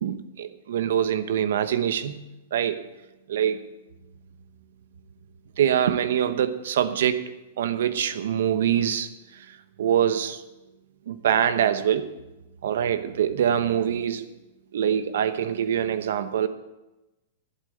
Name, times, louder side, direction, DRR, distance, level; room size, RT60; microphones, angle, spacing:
voice 1, 0.0-2.8 3.3-3.6 5.6-7.2 7.6-9.1 9.8-10.4 11.1-12.2 12.6-14.3 14.7-16.5, right 9 dB, 75° right, 0.9 m, -24 dB
11.5 x 8.3 x 7.8 m
supercardioid pair, 160°, 0 cm